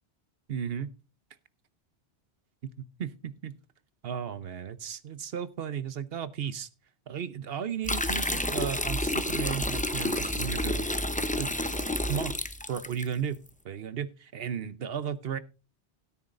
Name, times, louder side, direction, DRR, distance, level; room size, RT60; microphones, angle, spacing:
voice 1, 0.5-0.9 3.0-3.5 4.0-6.7 7.1-11.0 11.4-11.5 12.1-12.4 12.7-13.4 13.6-15.4, right 8 dB, 65° right, 1.0 m, -34 dB
sound 1, 7.8-13.1, left 1 dB, 10° left, 0.6 m, -30 dB
17.0 x 9.7 x 2.5 m
omnidirectional pair, 1.1 m